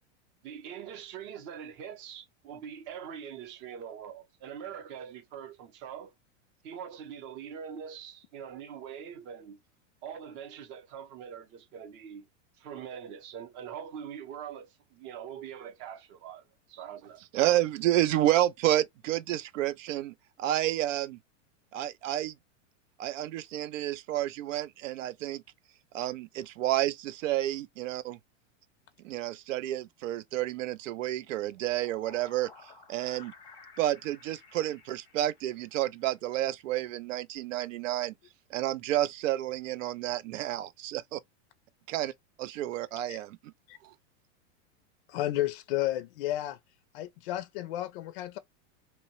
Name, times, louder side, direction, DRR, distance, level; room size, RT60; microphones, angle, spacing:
voice 1, 0.4-6.1 6.6-9.6 10.0-12.3 12.6-16.4 16.7-17.2, right 8 dB, 30° right, 0.6 m, -43 dB
voice 2, 17.3-21.2 21.7-22.3 23.0-25.4 25.9-28.2 29.0-32.5 32.9-33.3 33.8-38.1 38.5-41.2 41.9-42.1 42.4-43.5 43.8-43.9, right 14 dB, 85° right, 0.5 m, -30 dB
sound 1, 31.5-35.9, left 4 dB, 10° left, 0.6 m, -53 dB
voice 3, 45.1-46.6 46.9-48.4, left 14 dB, 50° left, 0.4 m, -32 dB
2.8 x 2.1 x 2.8 m
supercardioid pair, 150°, 38 cm